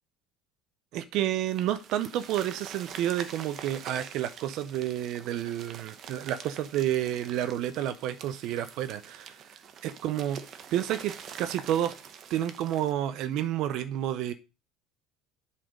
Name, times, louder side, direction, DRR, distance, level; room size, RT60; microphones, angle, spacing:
voice 1, 0.9-9.4 9.8-10.4 10.7-11.9 12.3-14.3, right 12 dB, 60° right, 0.5 m, -30 dB
sound 1, 1.5-12.9, right 7 dB, 40° right, 0.9 m, -45 dB
7.7 x 4.3 x 5.1 m
cardioid pair, 135°, 0 cm